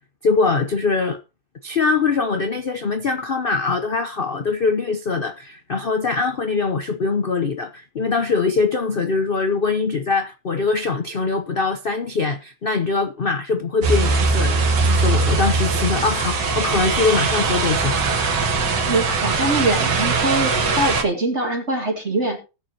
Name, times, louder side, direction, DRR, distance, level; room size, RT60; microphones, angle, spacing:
voice 1, 0.2-1.2 1.6-18.0, left 4 dB, 75° left, 0.5 m, -22 dB
sound 1, 13.8-21.0, right 4 dB, 65° right, 2.3 m, -20 dB
voice 2, 18.9-22.4, right 2 dB, 35° right, 2.2 m, -23 dB
19.0 x 6.9 x 2.8 m
omnidirectional pair, 2.1 m